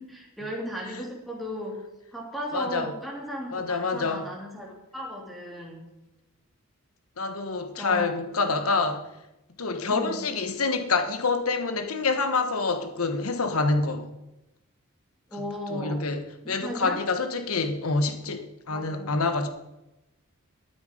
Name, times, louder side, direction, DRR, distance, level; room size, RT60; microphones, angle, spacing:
voice 1, 0.0-1.8 2.1-5.8 7.8-8.1 9.9-10.2 15.3-16.1 16.4-17.0 18.7-19.1, equal, ahead, 2.9 m, -36 dB
voice 2, 2.5-2.9 3.5-4.3 7.2-9.1 9.6-14.1 15.7-19.5, left 3 dB, 80° left, 1.2 m, -27 dB
12.0 x 9.8 x 5.1 m
head